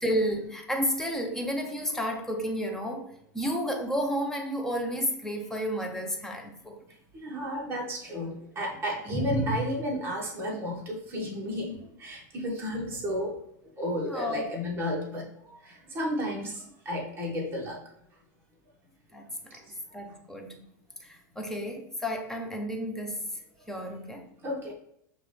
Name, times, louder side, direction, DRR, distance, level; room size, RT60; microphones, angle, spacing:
voice 1, 0.0-6.8 9.1-9.3 14.1-14.5 19.1-19.6 19.9-20.6 21.0-23.3 23.7-24.3, equal, 5° left, 0.6 m, -32 dB
voice 2, 7.1-13.4 13.8-17.8 19.5-19.7 20.1-20.2 24.4-24.7, equal, 20° right, 1.4 m, -32 dB
5.9 x 2.5 x 3.4 m
supercardioid pair, 135°, 10 cm